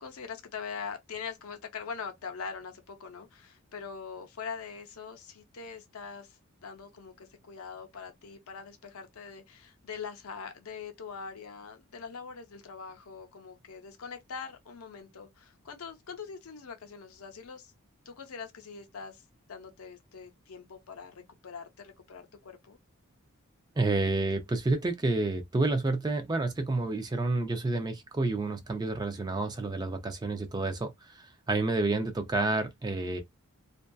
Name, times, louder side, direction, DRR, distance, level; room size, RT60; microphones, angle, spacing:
voice 1, 0.0-17.7 18.1-22.8, left 5 dB, 75° left, 0.6 m, -43 dB
voice 2, 23.8-33.2, right 2 dB, 20° right, 0.3 m, -29 dB
2.6 x 2.2 x 2.2 m
head